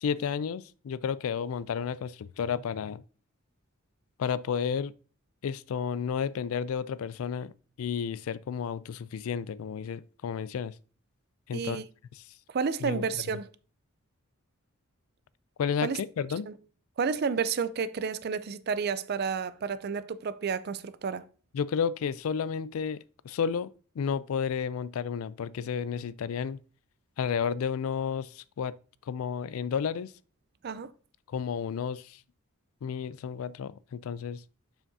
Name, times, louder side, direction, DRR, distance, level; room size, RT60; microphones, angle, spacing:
voice 1, 0.0-3.0 4.2-4.9 5.4-7.5 7.8-10.7 11.5-11.8 12.2-12.3 12.8-13.1 15.6-16.5 21.5-23.0 23.2-23.7 24.0-26.6 27.2-28.7 29.1-30.1 31.3-32.2 32.8-34.4, left 7 dB, 80° left, 0.3 m, -32 dB
voice 2, 11.5-11.8 12.5-13.5 15.8-16.0 16.5-16.6 17.0-21.2 30.6-30.9, right 5 dB, 50° right, 0.4 m, -31 dB
7.1 x 5.7 x 2.7 m
head